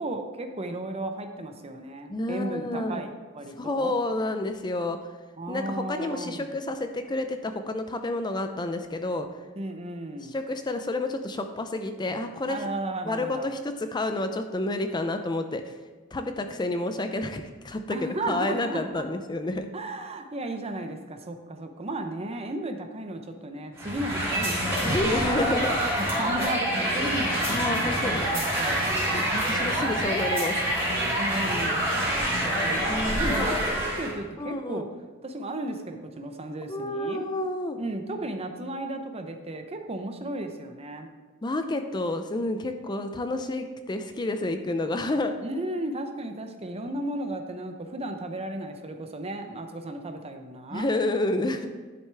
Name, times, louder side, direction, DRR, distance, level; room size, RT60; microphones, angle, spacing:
voice 1, 0.0-4.0 5.4-6.6 9.6-10.3 12.5-13.5 17.9-19.0 19.7-25.4 26.1-29.0 31.2-34.9 35.2-37.2 37.8-41.1 45.4-50.9, right 1 dB, 30° right, 6 dB, 0.7 m, -34 dB
voice 2, 2.1-3.1 3.6-5.0 5.5-9.3 10.3-12.6 13.1-15.7 16.1-19.7 24.8-26.1 27.5-28.3 29.1-30.6 32.9-33.5 34.4-34.9 36.7-37.8 41.4-45.4 50.7-51.7, left 2 dB, 20° left, 7 dB, 0.5 m, -29 dB
sound 1, 23.8-34.2, equal, 15° right, 2.9 m, -26 dB
10.5 x 6.7 x 3.4 m, 1.4 s
head